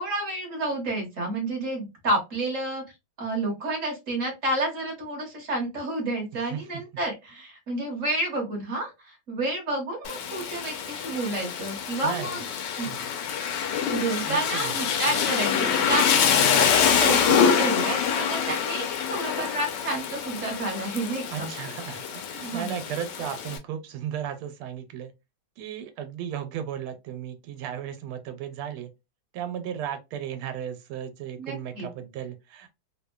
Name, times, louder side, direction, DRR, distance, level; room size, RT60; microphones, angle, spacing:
voice 1, 0.0-2.8 3.2-12.4 12.8-12.9 13.9-16.2 16.5-21.5 22.3-22.7 31.4-31.9, right 2 dB, 50° right, 1.1 m, -30 dB
voice 2, 6.3-6.8 12.0-12.4 12.8-13.1 14.3-14.7 15.1-15.2 21.3-25.1 25.6-28.9 29.3-32.7, right 9 dB, 90° right, 1.5 m, -35 dB
Rain, 10.0-23.6, left 7 dB, 70° left, 1.1 m, -25 dB
3.4 x 2.1 x 2.2 m
omnidirectional pair, 2.3 m